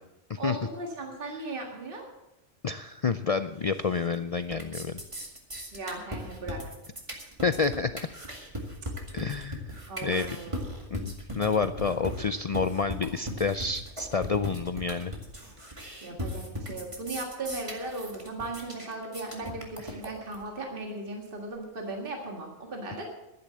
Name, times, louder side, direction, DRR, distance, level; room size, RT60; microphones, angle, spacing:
voice 1, 0.4-2.1 5.7-6.6 9.9-10.6 16.0-23.1, right 2 dB, 50° right, 1 dB, 2.0 m, -37 dB
voice 2, 2.6-5.0 7.4-7.9 9.1-9.7 10.0-10.3 10.9-15.1 15.8-16.0 19.9-20.0, left 5 dB, 65° left, 11 dB, 0.3 m, -29 dB
sound 1, 3.7-4.2 4.4-20.4, equal, 25° right, 2.2 m, -38 dB
11.5 x 10.0 x 7.5 m, 0.94 s
omnidirectional pair, 1.2 m